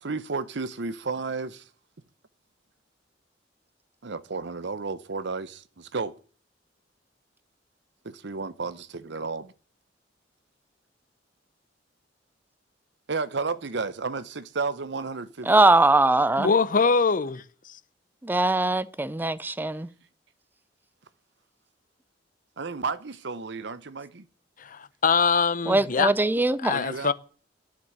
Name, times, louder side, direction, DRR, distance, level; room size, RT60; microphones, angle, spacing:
voice 1, 0.0-1.6 4.0-6.2 8.0-9.5 13.1-15.6 22.6-24.3 26.7-27.1, right 4 dB, 70° right, 0.8 m, -32 dB
voice 2, 15.5-16.5 18.2-19.9 25.7-26.7, right 2 dB, 10° right, 0.6 m, -21 dB
voice 3, 16.4-17.4 24.6-26.1 26.6-27.1, left 5 dB, 45° left, 0.7 m, -23 dB
10.5 x 7.6 x 9.7 m
head